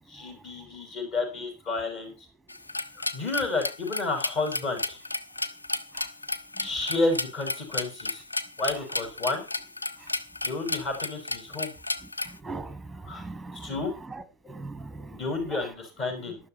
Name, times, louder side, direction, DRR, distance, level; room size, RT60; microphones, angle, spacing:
voice 1, 0.1-2.3 3.1-5.0 6.6-8.2 8.6-9.4 10.4-11.7 13.0-13.2 13.5-13.9 15.1-16.4, left 3 dB, 35° left, 5.4 m, -31 dB
sound 1, 2.5-12.4, left 2 dB, 80° left, 0.7 m, -33 dB
voice 2, 12.4-13.7 14.1-15.6, right 3 dB, 5° right, 1.4 m, -40 dB
12.0 x 11.0 x 4.3 m
figure-of-eight pair, 90°, 0 cm